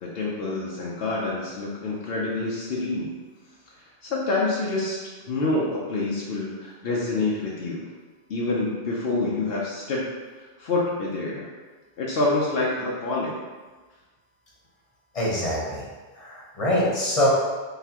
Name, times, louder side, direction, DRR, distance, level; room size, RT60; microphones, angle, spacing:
voice 1, 0.0-3.1 4.0-5.0 5.3-7.9 8.3-10.0 10.6-11.5 12.0-13.3, left 2 dB, 70° left, -5 dB, 0.8 m, -27 dB
voice 2, 15.1-15.9 16.1-17.3, left 1 dB, 35° left, -5 dB, 1.0 m, -24 dB
3.9 x 3.5 x 2.9 m, 1.3 s
omnidirectional pair, 1.0 m